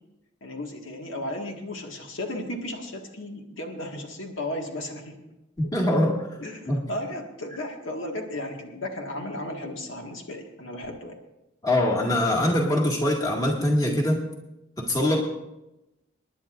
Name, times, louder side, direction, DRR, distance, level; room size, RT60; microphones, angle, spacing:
voice 1, 0.4-5.2 6.4-11.2, left 1 dB, 85° left, 2 dB, 1.8 m, -35 dB
voice 2, 5.7-6.2 6.7-6.8 11.6-14.2 14.8-15.2, left 1 dB, 20° left, -2 dB, 2.0 m, -23 dB
27.5 x 10.5 x 2.6 m, 0.94 s
head